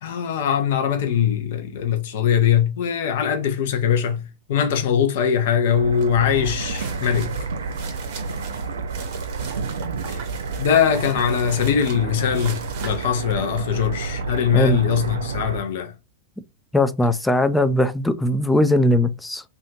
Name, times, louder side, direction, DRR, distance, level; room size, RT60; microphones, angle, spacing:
voice 1, 0.0-7.3 10.1-10.2 10.6-15.9, left 8 dB, 55° left, 0.6 m, -21 dB
sound 1, 5.7-15.6, right 4 dB, 70° right, 0.4 m, -30 dB
sound 2, 6.0-6.2 6.6-13.9, right 6 dB, 50° right, 0.8 m, -41 dB
voice 2, 16.7-19.4, left 1 dB, 5° left, 0.3 m, -19 dB
2.7 x 2.4 x 2.7 m
figure-of-eight pair, 90°, 0 cm